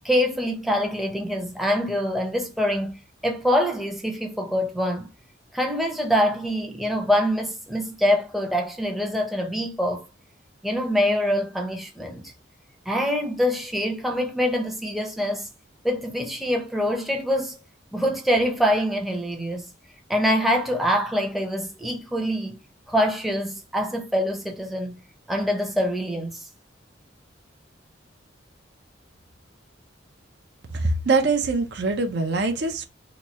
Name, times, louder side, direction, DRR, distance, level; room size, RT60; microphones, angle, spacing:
voice 1, 0.0-3.0 3.2-5.1 5.5-10.0 10.6-12.2 12.9-15.5 15.8-17.6 17.9-19.7 20.1-22.6 22.9-25.0 25.3-26.4, equal, ahead, 0.6 m, -24 dB
voice 2, 30.7-32.8, right 3 dB, 60° right, 0.5 m, -23 dB
3.0 x 2.2 x 4.2 m
head